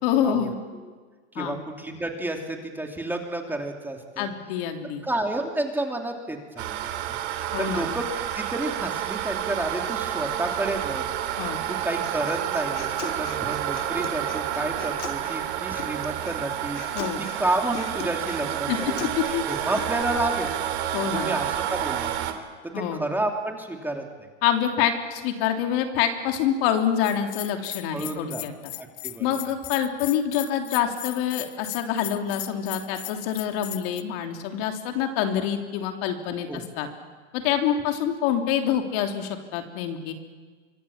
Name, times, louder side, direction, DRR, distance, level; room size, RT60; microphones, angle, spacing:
voice 1, 0.0-0.6 1.3-1.6 4.2-5.1 7.5-7.9 11.4-11.6 16.9-17.2 18.7-18.8 19.2-19.4 20.9-21.3 22.7-23.0 24.4-28.7 29.2-36.9 37.3-40.1, left 9 dB, 55° left, 4 dB, 3.1 m, -26 dB
voice 2, 1.3-4.3 5.0-7.2 7.6-8.0 8.3-11.0 11.7-16.8 17.2-19.1 19.5-20.7 21.1-22.4 23.0-24.3 27.9-28.4 28.7-29.2 36.5-36.6, right 1 dB, 5° right, 2 dB, 3.0 m, -30 dB
sound 1, 6.6-22.3, right 11 dB, 65° right, 2.9 m, -29 dB
Human voice, 12.0-20.0, left 7 dB, 90° left, 3.3 m, -41 dB
Bell, 27.0-34.0, left 19 dB, 40° left, 0.9 m, -37 dB
24.5 x 24.0 x 7.3 m, 1.5 s
hypercardioid pair, 120°, 35 cm